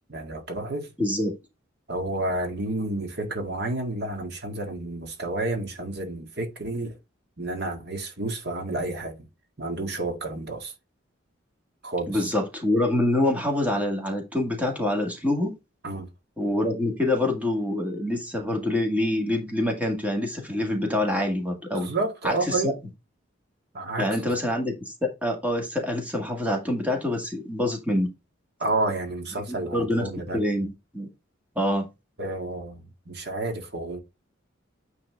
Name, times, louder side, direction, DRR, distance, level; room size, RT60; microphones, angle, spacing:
voice 1, 0.1-0.9 1.9-7.0 7.4-9.3 9.6-10.7 11.8-12.3 15.8-16.1 21.7-22.7 23.7-24.3 28.6-30.4 32.2-34.0, right 2 dB, 55° right, 1.8 m, -30 dB
voice 2, 1.0-1.3 12.1-15.5 16.4-21.9 22.2-22.7 24.0-28.1 29.5-31.1 31.6-31.9, left 1 dB, 10° right, 2.0 m, -26 dB
9.2 x 3.9 x 3.7 m
head